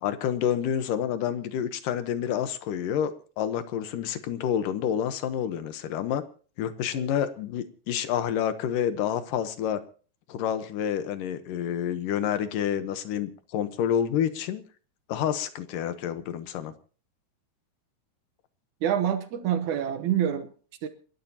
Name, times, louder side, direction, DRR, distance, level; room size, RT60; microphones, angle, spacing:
voice 1, 0.0-6.2 6.6-9.8 10.3-14.6 15.1-16.7, left 9 dB, 70° left, 11 dB, 2.3 m, -28 dB
voice 2, 18.8-20.5 20.8-20.9, right 9 dB, 70° right, 9 dB, 2.0 m, -26 dB
28.5 x 12.5 x 2.9 m, 0.40 s
omnidirectional pair, 4.8 m